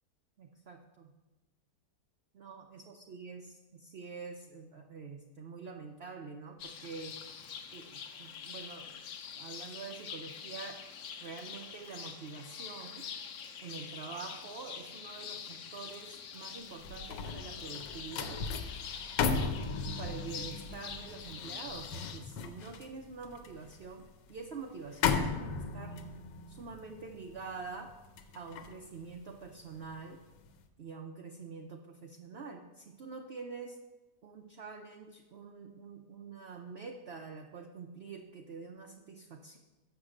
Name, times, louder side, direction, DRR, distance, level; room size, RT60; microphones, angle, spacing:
voice 1, 0.4-1.1 2.3-7.2 7.7-9.0 9.3-10.8 11.2-13.1 13.6-18.4 19.3-19.6 19.9-26.0 26.5-27.9 28.3-30.2 30.8-33.8 34.2-39.6, right 4 dB, 75° right, 3 dB, 0.5 m, -46 dB
sound 1, 6.6-22.2, left 7 dB, 60° left, 0.9 m, -45 dB
sound 2, 16.6-29.9 30.3-30.6, left 5 dB, 85° left, 1.4 m, -37 dB
7.3 x 6.1 x 6.4 m, 1.1 s
omnidirectional pair, 1.9 m